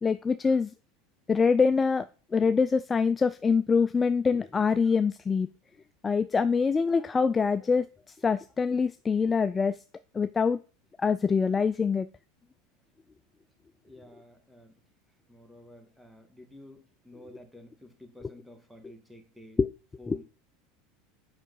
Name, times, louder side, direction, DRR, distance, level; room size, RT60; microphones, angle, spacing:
voice 1, 0.0-0.7 1.3-2.1 2.3-5.5 6.0-7.9 8.2-9.8 10.1-10.6 11.0-12.1 19.6-19.7 20.1-20.2, left 5 dB, 20° left, 0.4 m, -24 dB
voice 2, 13.8-14.8 15.3-19.6 20.0-20.2, left 1 dB, 5° right, 1.9 m, -51 dB
7.3 x 5.7 x 5.4 m
supercardioid pair, 110°, 0 cm